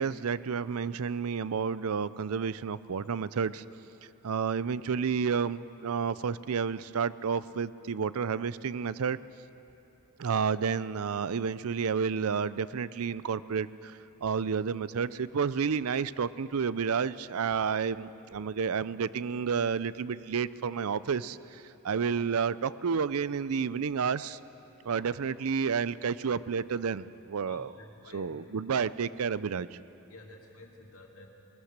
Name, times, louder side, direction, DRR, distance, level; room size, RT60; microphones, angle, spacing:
voice 1, 0.0-3.6 4.2-9.2 10.2-24.4 24.8-27.7 28.1-29.8, right 6 dB, 75° right, 17 dB, 0.5 m, -30 dB
voice 2, 24.9-25.2 27.5-28.4 30.1-31.3, left 2 dB, 70° left, 1 dB, 2.4 m, -51 dB
20.5 x 20.0 x 6.6 m, 3.0 s
head